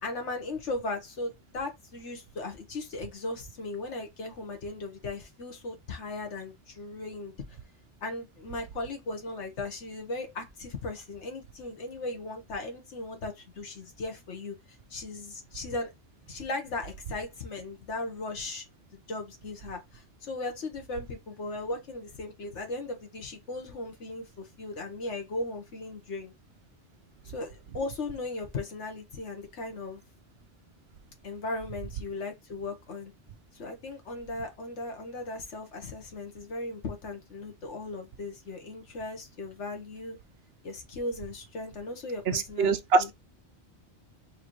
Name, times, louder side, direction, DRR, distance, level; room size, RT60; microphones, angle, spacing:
voice 1, 0.0-7.6 8.0-14.5 14.9-15.9 16.3-18.7 18.9-26.3 27.2-30.0 31.2-33.1 33.5-40.2 40.6-43.1, left 2 dB, 90° left, 1.5 m, -37 dB
voice 2, 42.3-43.1, right 4 dB, 65° right, 0.8 m, -24 dB
4.8 x 3.0 x 3.1 m
omnidirectional pair, 1.2 m